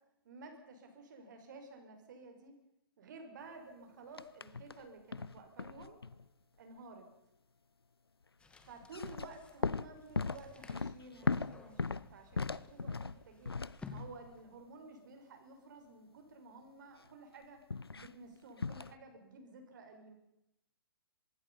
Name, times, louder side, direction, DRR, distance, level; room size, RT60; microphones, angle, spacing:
voice 1, 0.2-2.6 3.0-6.0 6.6-7.1 8.7-13.5 13.9-17.6 17.9-20.1, right 3 dB, 50° right, 5 dB, 5.9 m, -53 dB
sound 1, 4.2-4.8 5.1-6.3 8.8-14.3 17.7-18.1 18.6-18.9, left 4 dB, 85° left, 0.8 m, -38 dB
sound 2, 8.4-14.7, left 4 dB, 10° left, 2.4 m, -56 dB
25.0 x 22.0 x 5.6 m, 0.83 s
figure-of-eight pair, 125°, 12 cm